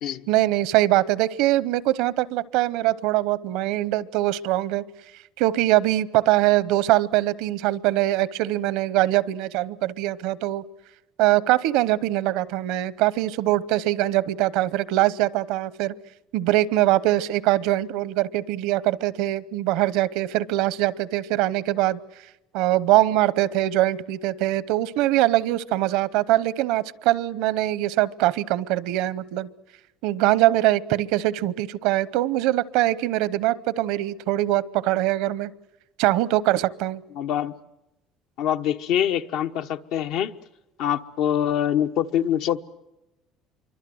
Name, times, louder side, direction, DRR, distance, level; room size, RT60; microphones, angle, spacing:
voice 1, 0.3-4.8 5.4-10.6 11.2-15.9 16.3-22.0 22.5-29.5 30.0-35.5 36.0-37.0, right 15 dB, 80° right, 0.8 m, -22 dB
voice 2, 37.2-37.5 38.4-40.3 40.8-42.6, left 10 dB, 70° left, 1.0 m, -24 dB
26.5 x 24.0 x 7.8 m
cardioid pair, 120°, 0 cm